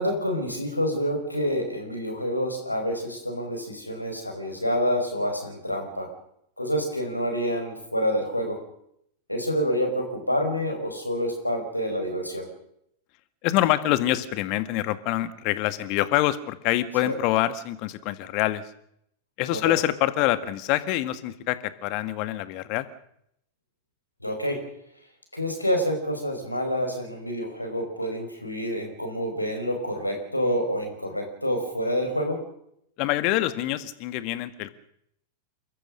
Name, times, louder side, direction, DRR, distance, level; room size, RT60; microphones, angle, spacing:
voice 1, 0.0-6.1 6.6-8.6 9.3-12.5 17.0-17.1 19.5-19.7 24.2-24.6 25.3-32.4, equal, 85° left, 3 dB, 5.2 m, -27 dB
voice 2, 13.4-18.7 19.4-22.9 33.0-34.7, left 15 dB, 45° left, 13 dB, 1.6 m, -25 dB
29.0 x 14.0 x 6.5 m, 0.74 s
figure-of-eight pair, 90°, 0 cm